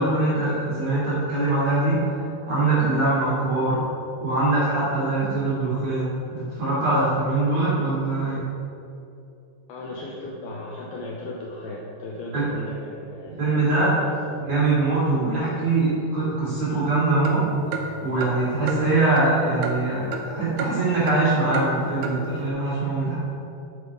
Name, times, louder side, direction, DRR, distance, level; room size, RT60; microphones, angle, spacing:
voice 1, 0.0-2.0 2.4-3.8 4.2-8.4 12.3-12.5 13.3-13.9 14.4-17.4 18.0-23.2, right 2 dB, 40° right, -8 dB, 3.3 m, -23 dB
voice 2, 9.7-14.5, left 2 dB, 80° left, -2 dB, 2.3 m, -36 dB
sound 1, 17.2-20.3 20.6-21.2 21.5-21.7 22.0-22.2, right 4 dB, 90° right, 3.2 m, -32 dB
10.0 x 7.3 x 4.8 m, 2.8 s
omnidirectional pair, 5.3 m